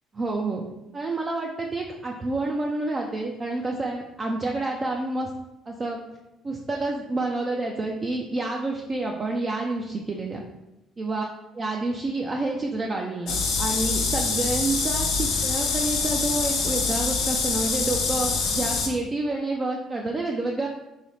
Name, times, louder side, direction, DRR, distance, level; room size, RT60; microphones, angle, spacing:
voice 1, 0.1-0.6 0.9-5.3 5.7-6.0 6.4-10.4 11.0-11.2 11.6-20.7, right 2 dB, 30° right, 0 dB, 0.4 m, -28 dB
sound 1, 13.3-18.9, left 4 dB, 75° left, 0.8 m, -25 dB
3.3 x 2.8 x 4.0 m, 0.94 s
cardioid pair, 100°, 0 cm